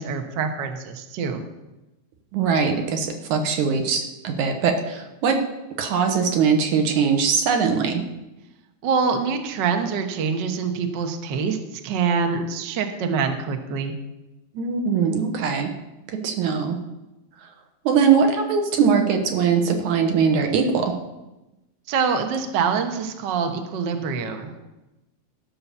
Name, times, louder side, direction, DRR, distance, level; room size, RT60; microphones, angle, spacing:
voice 1, 0.0-1.4 8.8-13.9 21.9-24.6, right 5 dB, 60° right, 6 dB, 1.2 m, -25 dB
voice 2, 2.3-5.4 5.8-8.0 14.5-15.7 16.1-16.8 17.9-20.9, right 6 dB, 80° right, 5 dB, 2.6 m, -21 dB
13.5 x 5.8 x 6.9 m, 0.99 s
omnidirectional pair, 3.4 m